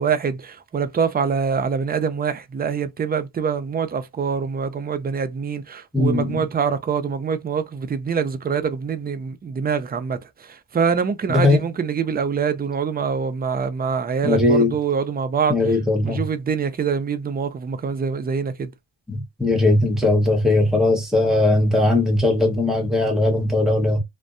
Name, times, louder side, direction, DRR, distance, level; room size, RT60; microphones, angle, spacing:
voice 1, 0.0-15.6 16.0-18.7, right 6 dB, 25° right, 0.3 m, -24 dB
voice 2, 5.9-6.4 11.3-11.6 14.2-14.8 15.5-16.2 19.1-24.0, left 2 dB, ahead, 1.0 m, -19 dB
2.5 x 2.1 x 2.4 m
cardioid pair, 90°, 44 cm